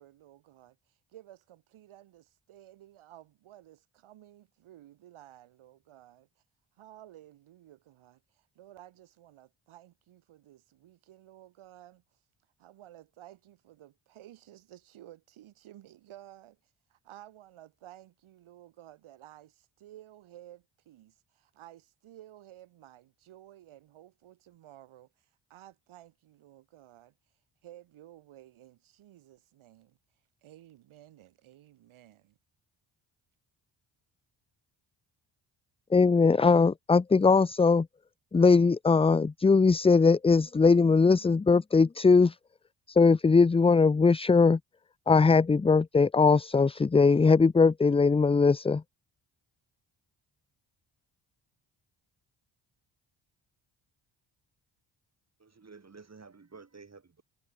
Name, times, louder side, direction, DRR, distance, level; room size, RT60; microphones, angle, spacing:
voice 1, 0.0-6.3 6.8-12.0 12.6-16.6 16.9-27.1 27.6-30.0 30.4-32.4, right 13 dB, 85° right, 3.6 m, -54 dB
voice 2, 35.9-37.9 38.3-42.4 42.9-44.6 45.1-48.8, left 4 dB, 15° left, 0.4 m, -21 dB
voice 3, 55.4-57.2, right 4 dB, 35° right, 3.9 m, -51 dB
cardioid pair, 70°, 47 cm